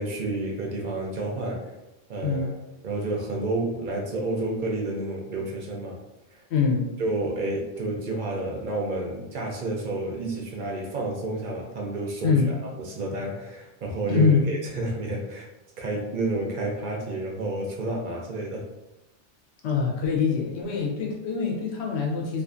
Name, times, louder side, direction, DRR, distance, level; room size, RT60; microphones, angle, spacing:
voice 1, 0.0-1.8 2.1-2.6 2.8-6.0 6.3-6.4 7.0-15.5 15.8-18.6, right 2 dB, 60° right, -1 dB, 0.5 m, -30 dB
voice 2, 6.5-6.9 12.2-12.5 14.1-14.4 19.6-22.4, left 5 dB, 70° left, -1 dB, 0.9 m, -24 dB
2.4 x 2.4 x 2.4 m, 0.95 s
omnidirectional pair, 1.2 m